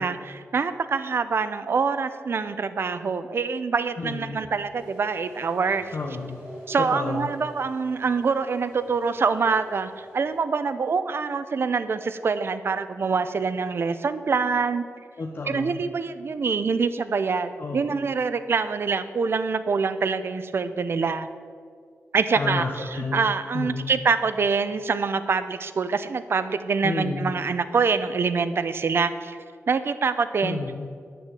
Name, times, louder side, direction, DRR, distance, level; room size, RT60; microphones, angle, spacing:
voice 1, 0.0-5.9 6.7-14.9 15.5-21.3 22.1-29.4 29.7-30.6, right 5 dB, 50° right, 11 dB, 0.6 m, -25 dB
voice 2, 4.0-4.5 5.9-6.4 6.9-7.3 15.2-15.8 17.6-18.0 22.4-24.0 26.8-27.4 30.4-30.9, left 3 dB, 45° left, 2 dB, 0.9 m, -31 dB
sound 1, 4.7-10.4, equal, 10° right, 3.5 m, -46 dB
10.5 x 6.9 x 7.6 m, 2.1 s
wide cardioid pair, 170°, 5 cm